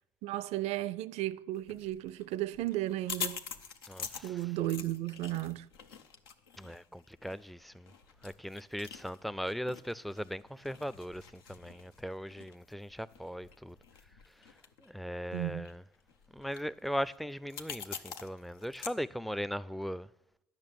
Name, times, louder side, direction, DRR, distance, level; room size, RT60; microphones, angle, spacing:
voice 1, 0.2-3.4 4.2-5.7 15.3-15.7, right 15 dB, 65° right, 0.4 m, -34 dB
sound 1, 1.6-18.9, left 6 dB, 85° left, 0.7 m, -46 dB
voice 2, 3.9-4.4 6.6-7.9 8.2-13.8 14.8-15.8 16.3-20.1, equal, ahead, 0.4 m, -39 dB
10.5 x 6.3 x 9.0 m
hypercardioid pair, 60°, 12 cm